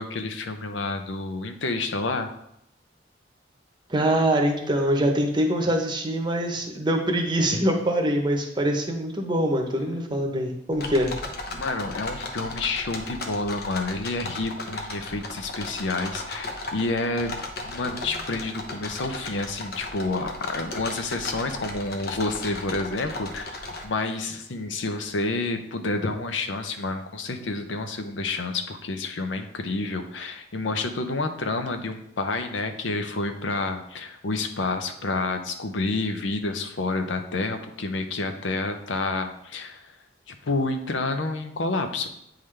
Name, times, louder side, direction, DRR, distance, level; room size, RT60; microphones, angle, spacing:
voice 1, 0.0-2.3 11.5-17.4 17.6-23.6 23.8-39.9 40.3-42.1, left 3 dB, 90° left, 7 dB, 0.7 m, -29 dB
voice 2, 3.9-11.1, right 1 dB, 25° right, 3 dB, 0.8 m, -24 dB
sound 1, 10.7-23.8, left 2 dB, 60° left, 0.9 m, -36 dB
8.7 x 3.8 x 3.3 m, 0.77 s
head